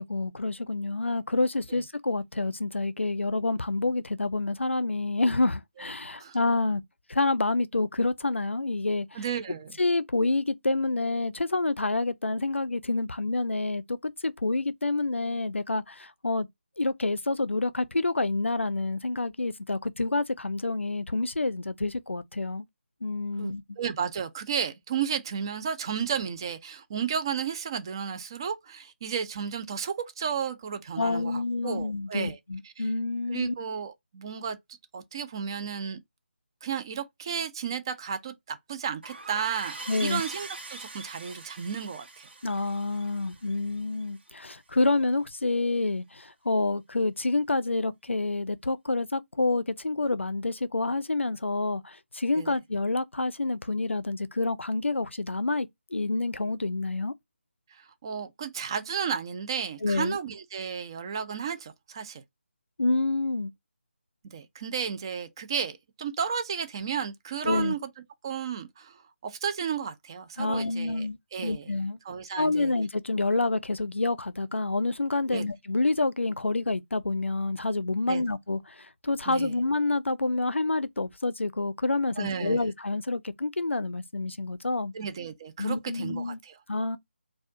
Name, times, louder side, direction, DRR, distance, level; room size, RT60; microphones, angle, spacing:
voice 1, 0.0-6.8 7.1-9.1 9.8-16.5 16.8-22.6 23.0-23.6 31.0-33.5 39.9-40.2 42.4-57.1 59.8-60.2 62.8-63.5 67.4-67.7 70.4-72.0 72.4-84.9 85.6-86.4 86.7-87.0, left 2 dB, 75° left, 0.5 m, -28 dB
voice 2, 9.1-9.7 23.4-32.4 32.8-32.9 33.3-34.6 34.9-36.0 36.6-42.3 52.3-52.5 58.0-62.2 64.3-67.8 68.2-71.6 72.1-72.7 75.3-75.5 78.1-78.2 79.3-79.5 82.2-82.6 84.9-86.6, right 7 dB, 20° right, 0.4 m, -33 dB
sound 1, 39.0-44.3, right 3 dB, 55° right, 1.1 m, -43 dB
4.1 x 2.3 x 2.6 m
figure-of-eight pair, 150°, 7 cm